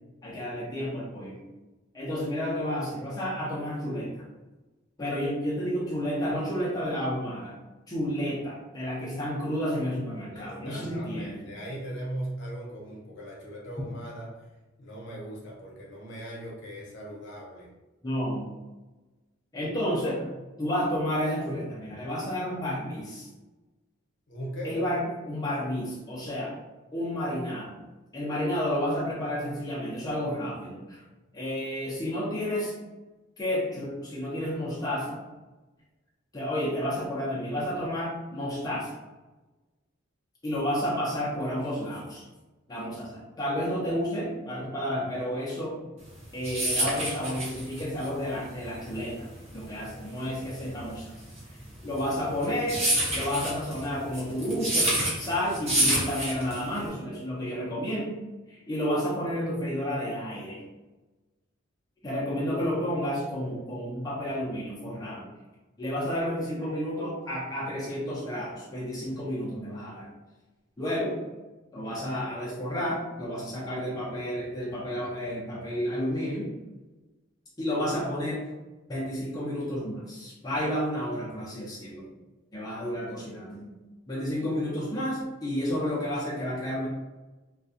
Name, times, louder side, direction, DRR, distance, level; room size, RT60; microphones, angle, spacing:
voice 1, 0.2-1.4 1.9-4.2 5.0-7.6 7.9-11.5 18.0-18.5 19.5-20.3 20.6-23.3 24.6-26.5 26.9-27.8 28.1-31.0 31.3-32.7 33.4-35.2 36.3-38.9 40.4-42.2 42.7-45.8 46.3-49.3 49.5-51.1 51.8-52.9 53.1-58.2 58.5-60.7 62.0-65.3 65.8-70.1 70.8-71.2 71.7-76.5 77.6-78.5 78.9-82.1 82.5-83.7 84.1-86.9, equal, 20° left, -7 dB, 0.5 m, -31 dB
voice 2, 10.3-14.3 14.8-17.7 24.3-24.7, right 1 dB, 60° left, -4 dB, 0.7 m, -39 dB
sound 1, 46.1-56.9, right 1 dB, 35° right, 0.8 m, -28 dB
2.4 x 2.2 x 2.6 m, 1.1 s
head